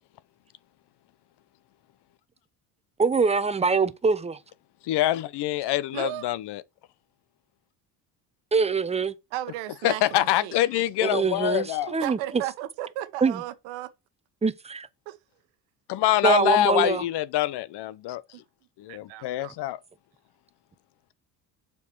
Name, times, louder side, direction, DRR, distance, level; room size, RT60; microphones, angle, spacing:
voice 1, 3.0-4.4 8.5-9.1 11.0-12.2 13.2-13.4 14.4-14.9 16.2-17.0, right 5 dB, 15° right, 0.7 m, -23 dB
voice 2, 4.8-6.6 9.8-12.0 15.9-18.2 18.8-19.8, left 14 dB, 60° left, 0.7 m, -25 dB
voice 3, 5.9-6.2 9.3-10.6 11.9-13.9 15.1-15.2 18.3-18.4 18.9-19.5, right 14 dB, 75° right, 1.1 m, -35 dB
7.0 x 4.7 x 4.5 m
hypercardioid pair, 65°, 47 cm